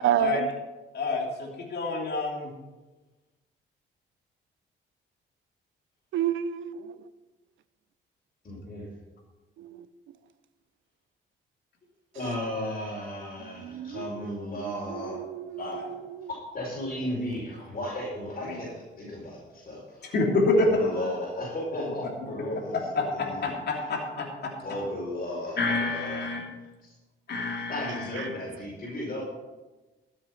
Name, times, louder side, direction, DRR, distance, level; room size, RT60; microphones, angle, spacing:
voice 1, 0.0-0.5 6.1-7.0 9.6-9.9 13.4-14.1 14.6-16.3, right 11 dB, 75° right, 15 dB, 0.7 m, -30 dB
voice 2, 0.9-2.5 15.6-15.9 17.0-17.1 18.5-18.6 20.1-20.7 22.7-24.5 25.6-26.4 27.3-28.3, left 3 dB, 55° left, -1 dB, 3.0 m, -28 dB
voice 3, 8.4-8.8 12.1-15.2 15.6-15.8 16.5-20.1 20.5-23.8 24.6-26.4 26.8-26.9 27.7-29.2, left 1 dB, 40° left, -7 dB, 5.1 m, -35 dB
13.5 x 7.7 x 5.8 m, 1.2 s
cardioid pair, 90°, 20 cm